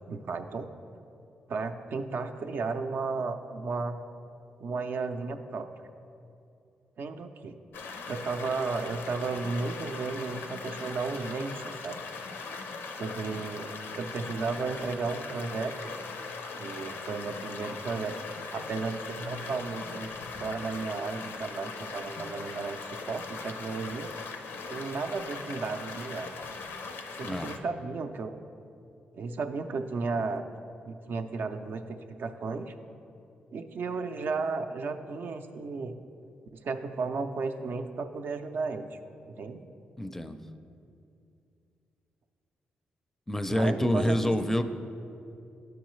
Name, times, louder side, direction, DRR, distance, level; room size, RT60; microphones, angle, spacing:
voice 1, 0.1-0.7 1.5-4.0 4.6-5.9 7.0-7.6 8.1-12.0 13.0-15.9 16.6-18.1 18.5-20.1 20.4-24.1 24.7-26.3 27.2-28.4 29.1-30.4 30.9-32.7 33.5-36.0 36.5-39.0 39.3-39.6 43.5-44.3, right 4 dB, 60° right, 7 dB, 0.5 m, -34 dB
sound 1, 7.7-27.6, left 4 dB, 80° left, 0.5 m, -40 dB
voice 2, 40.0-40.4 43.3-44.6, equal, 10° left, 9 dB, 0.5 m, -27 dB
11.5 x 4.7 x 3.1 m, 2.6 s
cardioid pair, 70°, 4 cm